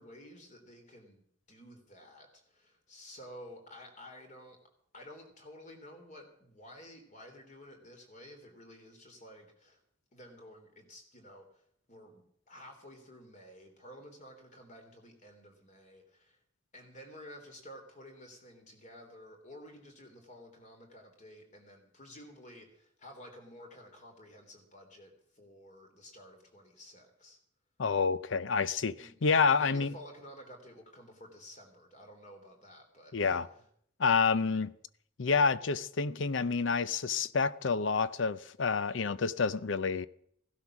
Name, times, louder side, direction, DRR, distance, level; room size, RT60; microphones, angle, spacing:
voice 1, 0.0-4.6 4.9-9.8 10.1-11.6 11.9-16.4 16.7-27.4 29.0-29.2 29.5-33.6, equal, 40° left, 3.3 m, -52 dB
voice 2, 27.8-28.9 29.2-29.9 33.1-33.4 34.0-34.7 35.2-40.1, left 5 dB, 75° left, 0.6 m, -28 dB
16.0 x 12.0 x 6.1 m
head